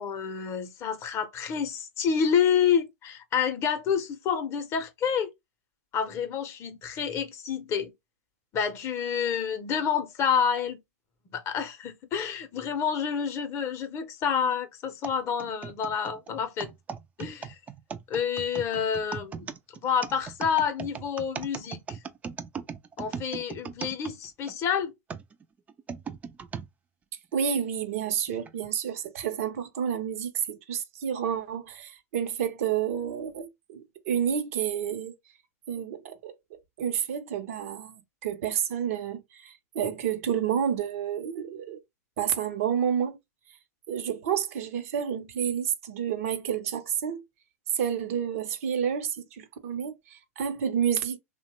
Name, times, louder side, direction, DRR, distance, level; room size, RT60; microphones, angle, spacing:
voice 1, 0.0-5.3 5.9-7.9 8.5-10.8 11.3-16.7 17.2-17.6 18.1-19.5 19.8-22.0 23.0-24.9, left 7 dB, 35° left, 0.6 m, -28 dB
sound 1, 15.0-24.6 25.1-26.7 27.3-27.4 28.3-28.5, right 6 dB, 15° right, 0.3 m, -38 dB
voice 2, 27.3-35.1 35.7-36.3 36.8-41.8 42.2-43.2 43.9-47.2 47.7-51.2, right 8 dB, 60° right, 0.6 m, -30 dB
2.8 x 2.1 x 2.9 m
hypercardioid pair, 115°, 8 cm